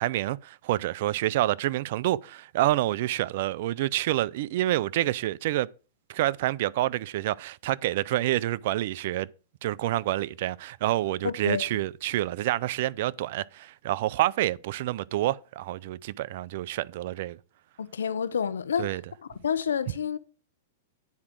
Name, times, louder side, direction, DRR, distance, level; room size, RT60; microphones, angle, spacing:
voice 1, 0.0-5.7 6.1-9.3 9.6-17.4 18.8-19.0, right 15 dB, 60° right, 0.4 m, -28 dB
voice 2, 11.2-11.8 17.8-19.0 19.4-20.2, left 7 dB, 90° left, 0.8 m, -29 dB
9.6 x 4.9 x 6.0 m
hypercardioid pair, 125°, 0 cm